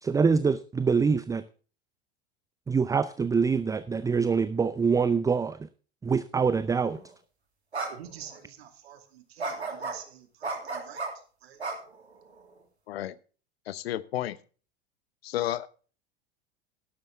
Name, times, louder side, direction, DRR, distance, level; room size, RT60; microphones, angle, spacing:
voice 1, 0.0-1.4 2.7-5.6 6.0-7.0, right 5 dB, 10° right, 0.5 m, -25 dB
sound 1, 6.9-7.1 7.7-7.9 8.3-8.4 9.4-10.0 10.4-11.1 11.6-12.4, right 3 dB, 85° right, 2.9 m, -33 dB
voice 2, 7.9-11.0 11.4-11.6, right 10 dB, 70° right, 2.6 m, -48 dB
voice 3, 13.7-14.4 15.2-15.7, left 13 dB, 70° left, 0.9 m, -31 dB
12.0 x 12.0 x 3.5 m
figure-of-eight pair, 80°, 32 cm